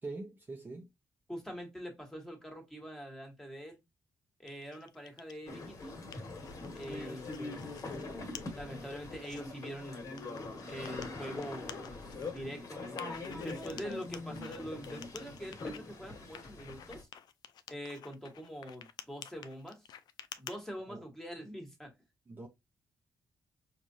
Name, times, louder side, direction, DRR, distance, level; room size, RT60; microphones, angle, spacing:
voice 1, 0.0-0.9 20.9-21.0 22.3-22.5, right 3 dB, 25° right, 0.7 m, -43 dB
voice 2, 1.3-3.8 4.4-6.0 6.7-7.9 8.5-10.2 10.7-12.8 13.4-17.1 17.7-19.9 20.4-21.9, equal, 5° left, 1.4 m, -44 dB
sound 1, 4.5-5.4 5.8-8.0 8.3-8.4 8.9-9.4 10.2-12.4 13.0-15.8 16.3-20.6, left 9 dB, 75° left, 0.4 m, -50 dB
sound 2, 5.5-17.0, left 3 dB, 50° left, 1.4 m, -43 dB
4.8 x 2.5 x 2.7 m
cardioid pair, 95°, 7 cm